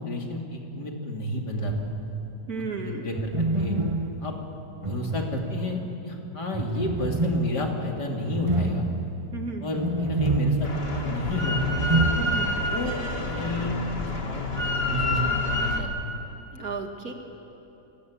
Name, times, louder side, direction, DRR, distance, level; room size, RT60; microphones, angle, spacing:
voice 1, 0.0-1.9 2.5-3.8 4.2-4.3 4.8-8.9 9.6-11.7 12.1-12.3 12.7-13.8 14.2-14.5 14.8-15.9, left 2 dB, 70° left, 1 dB, 3.5 m, -31 dB
sound 1, 1.6-2.3 3.1-5.9 6.5-12.8 13.0-13.1 14.9-15.3, right 2 dB, 25° right, 0.8 m, -28 dB
voice 2, 2.5-3.1 9.3-9.7 12.2-12.5 16.5-17.1, right 4 dB, 55° right, 3 dB, 2.5 m, -34 dB
Drill, 10.6-15.8, left 2 dB, 35° left, 2.2 m, -28 dB
29.0 x 18.0 x 8.6 m, 2.9 s
omnidirectional pair, 1.9 m